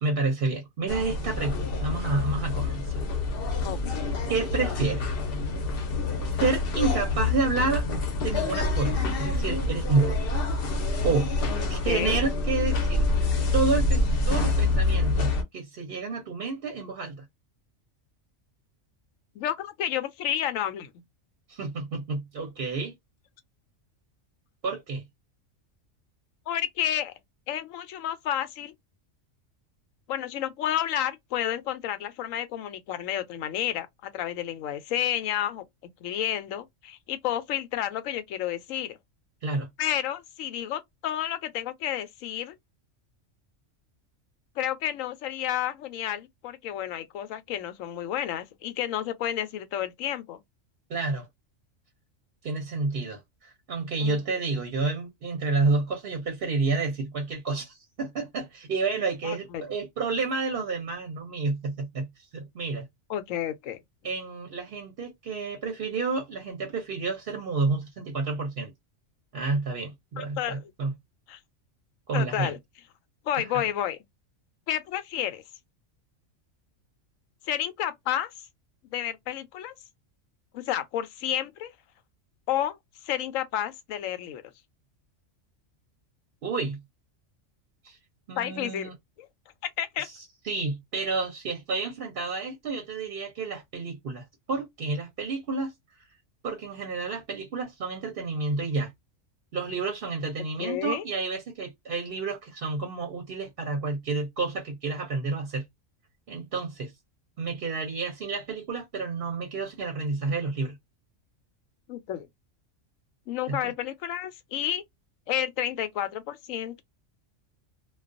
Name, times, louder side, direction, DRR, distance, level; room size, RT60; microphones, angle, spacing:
voice 1, 0.0-3.1 4.3-5.1 6.4-7.9 8.2-10.2 11.0-11.3 11.7-13.1 13.5-17.2 21.5-22.9 24.6-25.0 39.4-39.7 50.9-51.3 52.4-62.8 64.0-68.7 69.3-70.9 72.1-72.5 73.4-73.6 86.4-86.8 87.8-88.0 88.3-88.9 90.0-95.7 96.4-98.9 99.5-105.6 106.3-106.9 107.4-110.8 113.5-113.7, right 3 dB, 55° right, 0.8 m, -30 dB
sound 1, 0.9-15.4, left 3 dB, 55° left, 0.8 m, -27 dB
voice 2, 3.6-4.1 11.8-12.2 19.4-20.9 26.5-27.1 27.5-28.7 30.1-35.6 36.0-39.0 39.8-42.5 44.6-50.4 54.0-54.2 59.2-59.6 63.1-63.8 70.2-70.7 71.3-71.4 72.1-72.6 73.3-74.0 74.7-75.4 77.5-78.3 78.9-79.7 80.5-81.7 82.5-82.8 83.1-84.4 88.4-88.9 89.2-89.3 89.8-90.1 100.6-101.0 111.9-112.3 113.3-114.8 115.3-116.8, left 11 dB, 90° left, 1.0 m, -30 dB
2.3 x 2.2 x 2.4 m
omnidirectional pair, 1.3 m